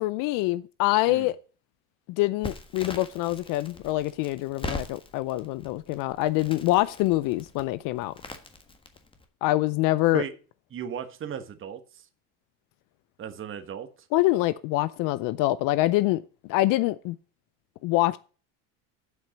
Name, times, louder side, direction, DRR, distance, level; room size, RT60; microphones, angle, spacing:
voice 1, 0.0-1.4 2.2-8.1 9.4-10.2 14.1-16.2 16.5-17.2 17.8-18.2, left 17 dB, 60° left, 0.6 m, -25 dB
Crackle, 2.4-9.2, left 2 dB, 15° left, 1.5 m, -41 dB
voice 2, 10.7-12.1 13.2-13.9, right 8 dB, 35° right, 1.2 m, -36 dB
7.7 x 5.9 x 6.9 m
supercardioid pair, 105°, 37 cm